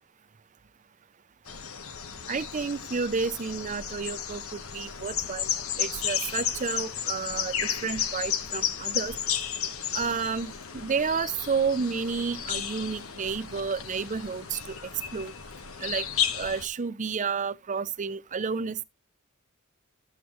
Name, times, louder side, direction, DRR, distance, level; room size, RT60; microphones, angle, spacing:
sound 1, 1.5-16.7, left 8 dB, 80° left, 1.1 m, -33 dB
voice 1, 2.3-5.5 5.8-7.5 7.8-9.1 9.9-14.7 15.1-15.3 15.8-16.1 16.3-18.8, right 5 dB, 35° right, 0.5 m, -31 dB
12.5 x 7.5 x 3.1 m
head